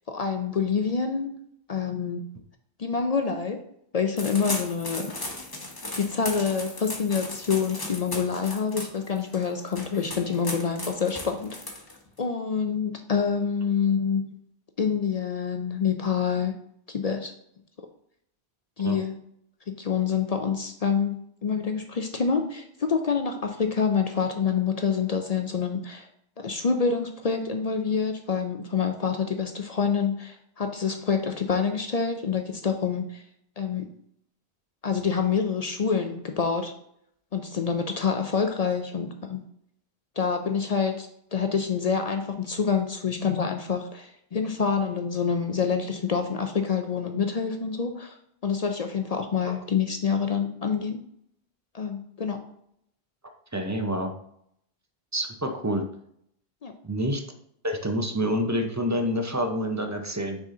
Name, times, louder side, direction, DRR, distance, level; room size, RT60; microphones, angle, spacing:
voice 1, 0.1-1.4 1.7-2.2 2.8-3.6 3.9-5.1 6.0-11.6 12.2-14.2 14.8-16.5 16.9-17.3 18.8-19.1 19.7-26.1 26.4-33.2 33.6-33.9 34.8-36.7 37.3-39.4 40.2-48.1 48.4-51.0 51.7-52.4 56.6-56.7, left 6 dB, 50° left, 6 dB, 0.5 m, -27 dB
sound 1, 4.2-12.2, left 2 dB, 20° left, 1.0 m, -36 dB
voice 2, 53.5-54.1 55.1-55.8 56.8-57.2 57.6-60.4, equal, 20° right, 4 dB, 0.5 m, -27 dB
6.2 x 4.1 x 3.8 m, 0.70 s
omnidirectional pair, 1.1 m